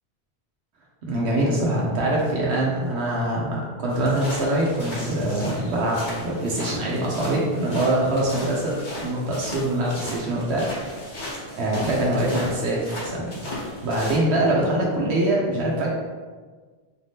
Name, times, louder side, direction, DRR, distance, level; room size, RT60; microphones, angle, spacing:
voice 1, 1.0-8.8 9.0-10.6 11.1-11.3 11.6-13.3 13.8-15.9, right 1 dB, 90° right, -4 dB, 1.0 m, -24 dB
sound 1, 3.9-14.2, left 1 dB, 50° left, 1.0 m, -35 dB
4.3 x 2.7 x 3.4 m, 1.4 s
omnidirectional pair, 1.1 m